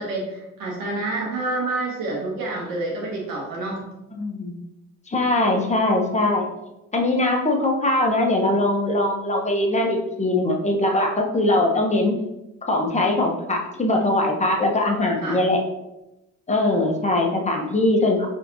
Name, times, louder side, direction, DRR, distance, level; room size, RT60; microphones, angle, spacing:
voice 1, 0.0-3.8 15.2-15.4, right 2 dB, 85° right, -3 dB, 1.5 m, -28 dB
voice 2, 4.2-4.6 5.1-6.5 6.9-12.2 12.7-15.6 16.5-18.3, left 2 dB, 20° left, 1 dB, 0.9 m, -21 dB
4.5 x 3.5 x 2.7 m, 0.92 s
cardioid pair, 70°, 34 cm